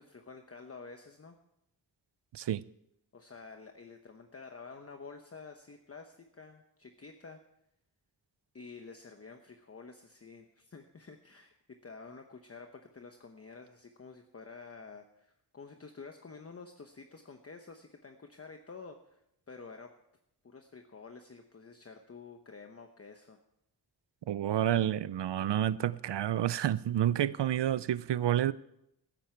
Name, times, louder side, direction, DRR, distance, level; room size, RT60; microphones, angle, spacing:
voice 1, 0.0-1.4 3.1-7.4 8.5-19.9 20.4-23.4, left 4 dB, 35° left, 0.9 m, -50 dB
voice 2, 24.3-28.5, right 11 dB, 90° right, 0.6 m, -29 dB
15.5 x 13.0 x 4.5 m
wide cardioid pair, 135°, 41 cm